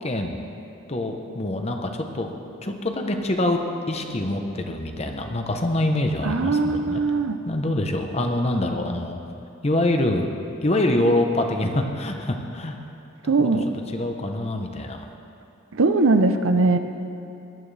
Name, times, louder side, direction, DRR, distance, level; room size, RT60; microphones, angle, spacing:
voice 1, 0.0-0.4 0.9-2.3 2.6-3.6 3.9-7.0 7.5-9.2 9.6-10.3 10.6-12.8 13.4-13.5 13.9-15.1, left 1 dB, 30° left, 4 dB, 0.9 m, -25 dB
voice 2, 6.2-7.4 13.2-13.7 15.7-16.8, right 3 dB, 80° right, 8 dB, 0.7 m, -20 dB
18.0 x 11.5 x 3.4 m, 2.7 s
head